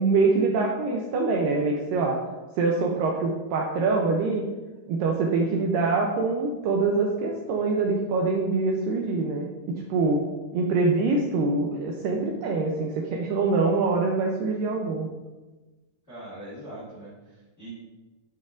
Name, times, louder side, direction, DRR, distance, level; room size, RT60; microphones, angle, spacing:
voice 1, 0.0-2.2 2.6-4.5 4.9-10.2 10.5-15.1, right 3 dB, 80° right, 0 dB, 2.0 m, -24 dB
voice 2, 16.1-17.7, right 1 dB, 30° left, -9 dB, 1.3 m, -42 dB
11.5 x 4.3 x 2.5 m, 1.2 s
omnidirectional pair, 4.5 m